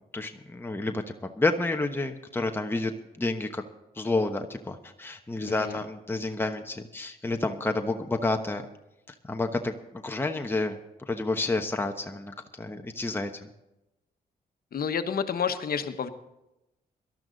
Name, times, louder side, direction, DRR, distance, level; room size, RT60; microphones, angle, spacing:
voice 1, 0.1-1.0 1.4-2.9 3.2-3.6 4.0-8.6 9.2-9.7 10.0-10.8 11.1-13.5, left 2 dB, 15° left, 4 dB, 1.1 m, -29 dB
voice 2, 5.4-5.8 14.7-16.1, left 7 dB, 60° left, 8 dB, 1.2 m, -29 dB
18.0 x 12.5 x 4.0 m, 0.92 s
cardioid pair, 70°, 17 cm